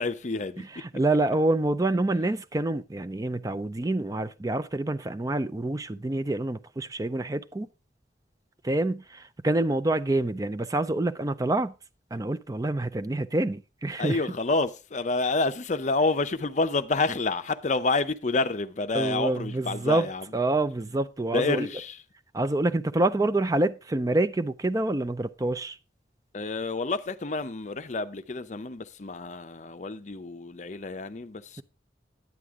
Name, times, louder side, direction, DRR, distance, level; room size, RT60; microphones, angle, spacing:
voice 1, 0.0-0.6 14.0-20.3 21.3-22.0 26.3-31.6, left 3 dB, 45° left, 0.6 m, -28 dB
voice 2, 0.8-7.7 8.6-11.7 12.1-14.2 18.9-20.1 20.3-21.7 22.3-25.8, right 2 dB, 20° right, 0.4 m, -27 dB
9.6 x 9.3 x 3.6 m
head